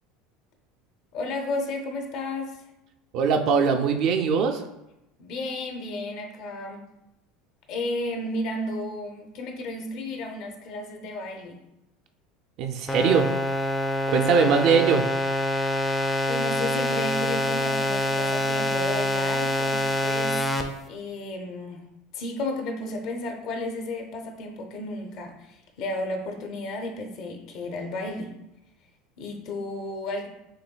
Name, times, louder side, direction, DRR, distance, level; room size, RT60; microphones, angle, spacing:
voice 1, 1.1-2.6 5.2-6.8 7.7-11.6 16.3-20.4 20.9-21.9 22.1-28.3 29.2-30.3, left 2 dB, 60° left, 3 dB, 0.6 m, -33 dB
voice 2, 3.1-4.6 12.6-13.3 14.1-15.0, right 6 dB, 55° right, 5 dB, 0.3 m, -21 dB
sound 1, 12.9-20.6, left 1 dB, 15° left, 0.4 m, -25 dB
6.3 x 2.3 x 2.2 m, 0.90 s
supercardioid pair, 120°, 0 cm